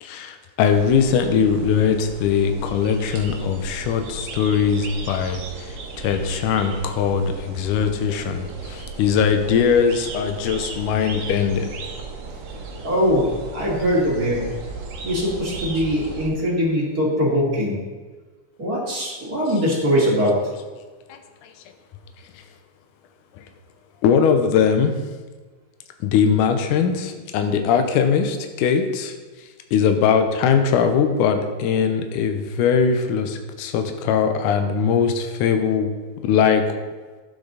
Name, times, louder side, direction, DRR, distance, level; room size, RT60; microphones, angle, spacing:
voice 1, 0.0-11.7 21.1-21.5 23.4-23.5 24.0-25.0 26.0-29.1 29.7-35.9 36.2-36.7, left 7 dB, 75° left, 6 dB, 2.3 m, -20 dB
sound 1, 0.6-16.3, right 3 dB, 60° right, 2.2 m, -36 dB
voice 2, 12.8-14.4 15.0-17.8 18.6-20.4, equal, 30° right, -5 dB, 2.5 m, -21 dB
11.5 x 9.1 x 4.0 m, 1.3 s
omnidirectional pair, 4.0 m